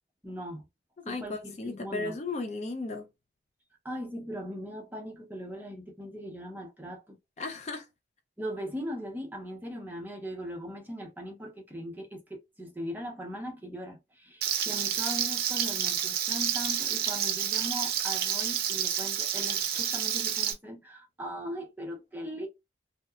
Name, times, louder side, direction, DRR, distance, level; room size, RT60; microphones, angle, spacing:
voice 1, 0.2-0.7 1.1-2.2 3.8-7.2 8.4-22.5, equal, 10° right, 0.6 m, -39 dB
voice 2, 1.0-3.1 7.4-7.9, left 3 dB, 35° left, 0.4 m, -35 dB
Frying (food), 14.4-20.5, right 9 dB, 55° right, 0.5 m, -29 dB
2.7 x 2.2 x 2.2 m
head